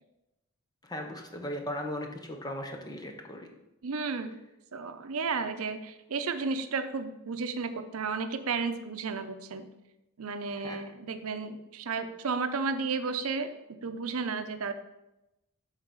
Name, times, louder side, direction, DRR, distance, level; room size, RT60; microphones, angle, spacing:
voice 1, 0.8-3.5 10.5-10.8, left 1 dB, 20° left, 3 dB, 0.9 m, -37 dB
voice 2, 3.8-4.4 4.7-9.7 10.2-13.5 13.8-14.7, right 4 dB, 90° right, 9 dB, 0.6 m, -33 dB
7.4 x 4.0 x 6.2 m, 0.94 s
head